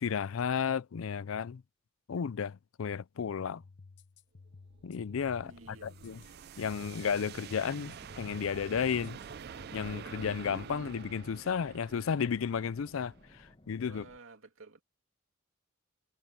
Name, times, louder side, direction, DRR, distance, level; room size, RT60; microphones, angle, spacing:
voice 1, 0.0-1.6 2.1-3.6 4.8-6.2 6.6-9.2 9.7-13.1 13.7-14.0, left 7 dB, 80° left, 0.4 m, -33 dB
sound 1, 3.6-9.7, left 3 dB, 60° left, 0.9 m, -55 dB
sound 2, 4.6-13.5, right 7 dB, 50° right, 0.4 m, -48 dB
voice 2, 5.4-5.9 13.9-14.8, right 3 dB, 80° right, 2.7 m, -53 dB
sound 3, 7.7-14.2, left 1 dB, 25° left, 1.1 m, -59 dB
head